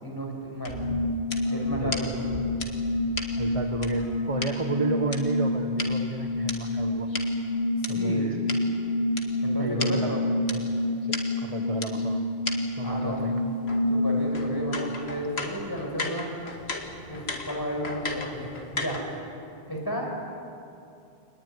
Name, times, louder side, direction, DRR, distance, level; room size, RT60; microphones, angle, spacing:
voice 1, 0.0-0.8 1.5-2.4 7.9-8.3 9.4-10.2 12.8-13.2 13.9-16.3 17.1-19.0 19.7-20.1, equal, 20° left, 0 dB, 5.9 m, -33 dB
sound 1, 0.6-4.5 5.1-7.9 8.5-8.6 9.2-9.3 9.5-9.6 9.8-9.9 10.5-10.6 11.1-11.2 11.8-11.9 12.4-12.5 12.8-19.2, left 2 dB, 80° left, 2.5 m, -36 dB
sound 2, 0.7-15.1, left 1 dB, 5° right, 7.7 m, -28 dB
voice 2, 3.4-7.2 7.9-8.4 9.6-10.1 10.5-10.6 11.0-12.3 12.8-13.3, right 3 dB, 30° right, 5 dB, 1.3 m, -32 dB
26.0 x 20.5 x 9.8 m, 2.6 s
omnidirectional pair, 1.1 m